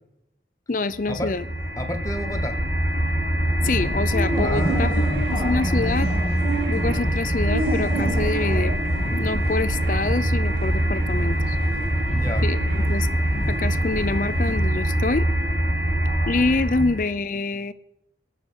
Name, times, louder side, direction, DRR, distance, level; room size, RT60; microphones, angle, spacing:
voice 1, 0.7-1.5 3.6-6.1 6.7-8.7 9.1-11.6 12.4-13.1 13.5-15.3 16.3-17.7, left 3 dB, 50° left, 14 dB, 0.6 m, -26 dB
sound 1, 0.9-17.1, right 1 dB, 75° right, 4.1 m, -24 dB
voice 2, 1.8-2.6 4.4-5.2 12.1-12.4 16.8-16.9, left 1 dB, 20° left, 7 dB, 0.9 m, -30 dB
sound 2, 3.6-14.6, right 1 dB, 10° right, 5.9 m, -31 dB
13.0 x 6.7 x 7.8 m, 0.80 s
head